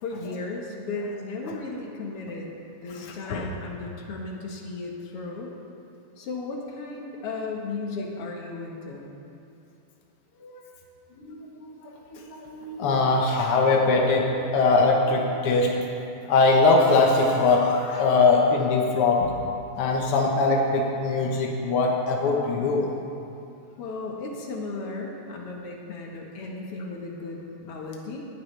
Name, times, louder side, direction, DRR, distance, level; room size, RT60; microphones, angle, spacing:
voice 1, 0.0-2.5 2.8-5.5 6.2-9.1 23.8-28.3, left 3 dB, 55° left, -1 dB, 1.8 m, -35 dB
voice 2, 2.9-3.5 10.4-10.5 11.2-11.7 12.1-12.2 12.5-15.7 16.3-19.3 19.8-22.9, left 3 dB, 75° left, -1 dB, 1.3 m, -21 dB
19.0 x 12.0 x 3.3 m, 2.8 s
omnidirectional pair, 4.1 m